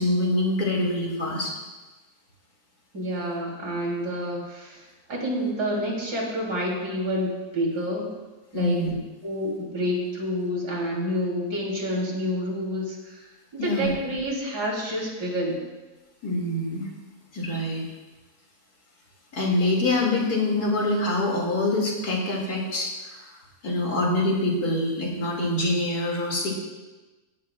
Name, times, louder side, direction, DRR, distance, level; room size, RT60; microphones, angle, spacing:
voice 1, 0.0-1.5 8.5-8.9 13.6-13.9 16.2-16.9 17.3-17.8 19.3-23.2 23.6-26.5, left 1 dB, 70° left, -1 dB, 2.9 m, -25 dB
voice 2, 2.9-4.8 5.1-8.1 8.5-8.8 9.2-13.3 13.5-15.6, equal, 80° right, -2 dB, 3.7 m, -28 dB
16.0 x 15.5 x 2.4 m, 1.2 s
omnidirectional pair, 1.7 m